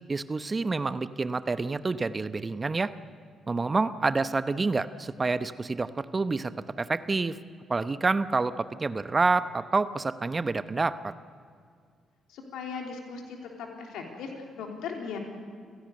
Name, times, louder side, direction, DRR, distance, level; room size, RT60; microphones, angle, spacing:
voice 1, 0.1-2.9 3.5-6.5 6.8-7.4 7.7-11.1, right 3 dB, 30° right, 13 dB, 0.9 m, -28 dB
voice 2, 12.3-15.2, left 5 dB, 65° left, 1 dB, 3.4 m, -38 dB
29.0 x 16.5 x 6.7 m, 2.2 s
figure-of-eight pair, 40°, 0 cm